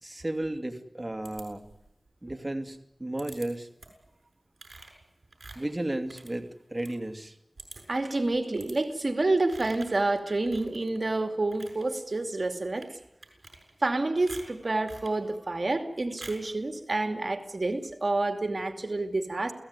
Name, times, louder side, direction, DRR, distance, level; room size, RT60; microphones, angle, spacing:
voice 1, 0.0-1.6 2.2-3.7 5.6-7.3, right 1 dB, 30° right, 7 dB, 2.6 m, -34 dB
sound 1, 1.2-1.9 3.2-3.5 3.8-4.1 4.6-7.0 7.3-7.4 7.6-8.0 8.6-8.8 9.5-10.0 10.4-11.0 11.4-11.8 12.7-12.9 13.2-13.9 14.3-15.2 16.2-16.5, right 3 dB, 80° right, 7.1 m, -47 dB
voice 2, 7.9-12.9 13.8-19.5, right 2 dB, 65° right, 7 dB, 2.6 m, -28 dB
29.5 x 18.0 x 9.7 m, 0.83 s
wide cardioid pair, 50°, 0 cm